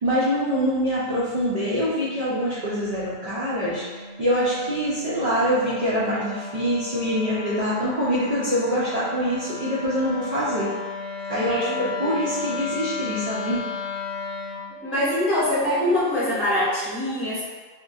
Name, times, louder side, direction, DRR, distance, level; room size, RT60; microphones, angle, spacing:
voice 1, 0.0-10.7 11.3-11.7 12.0-13.6, equal, 85° right, -9 dB, 0.3 m, -24 dB
Wind instrument woodwind instrument, 1.8-14.7, left 4 dB, 60° left, 0.9 m, -35 dB
voice 2, 11.5-12.2 14.7-17.4, left 1 dB, 20° left, -12 dB, 1.0 m, -24 dB
2.9 x 2.5 x 2.3 m, 1.4 s
omnidirectional pair, 1.4 m